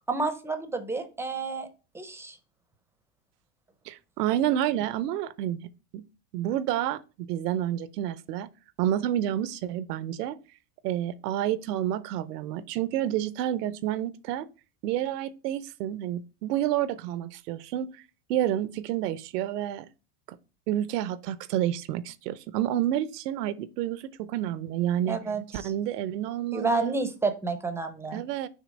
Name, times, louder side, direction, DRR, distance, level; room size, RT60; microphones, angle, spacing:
voice 1, 0.1-1.7 1.9-2.4 25.1-25.7 26.5-28.2, right 3 dB, 5° right, 0.5 m, -30 dB
voice 2, 3.9-6.0 6.3-8.5 8.8-10.4 10.8-14.5 14.8-17.9 18.3-19.9 20.3-20.4 20.7-25.2 25.5-27.0 28.1-28.5, right 12 dB, 80° right, 0.7 m, -29 dB
6.5 x 3.1 x 5.1 m
supercardioid pair, 125°, 47 cm